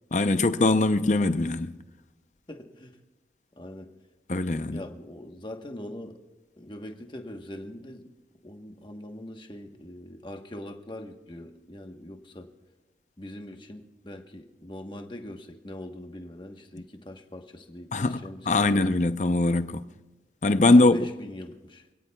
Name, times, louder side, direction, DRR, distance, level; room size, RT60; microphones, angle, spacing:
voice 1, 0.1-1.8 4.3-4.8 17.9-18.2 18.5-19.8 20.4-21.0, left 2 dB, 40° left, 0.6 m, -21 dB
voice 2, 2.5-3.0 3.6-3.9 4.7-6.2 6.6-8.0 8.4-12.5 13.2-18.8 20.6-21.8, left 1 dB, 25° left, 1.1 m, -42 dB
27.0 x 17.0 x 2.3 m
head